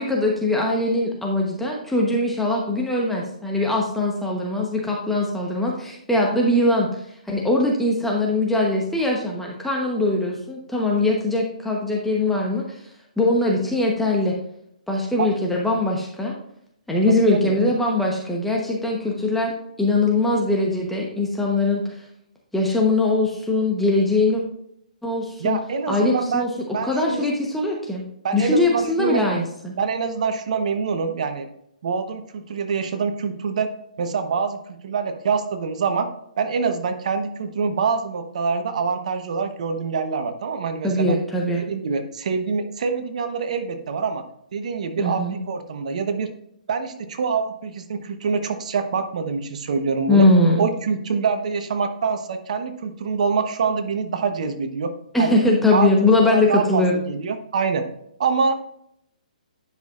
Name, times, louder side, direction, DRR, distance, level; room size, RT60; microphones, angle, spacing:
voice 1, 0.0-12.8 13.2-14.3 14.9-16.3 16.9-22.0 22.5-24.4 25.0-25.6 25.9-26.5 26.8-28.0 28.3-29.7 40.8-41.7 45.0-45.3 50.1-50.7 55.1-57.0, left 2 dB, 5° left, -2 dB, 1.0 m, -21 dB
voice 2, 17.1-17.5 25.4-27.2 28.2-29.3 29.8-31.5 31.8-33.7 34.0-34.6 34.8-36.1 36.4-41.1 41.5-44.2 44.5-46.3 46.7-50.3 50.6-54.9 55.2-55.4 55.7-55.9 56.3-57.9 58.2-58.6, right 5 dB, 60° right, 8 dB, 1.0 m, -25 dB
10.5 x 6.0 x 2.5 m, 0.73 s
hypercardioid pair, 135°, 4 cm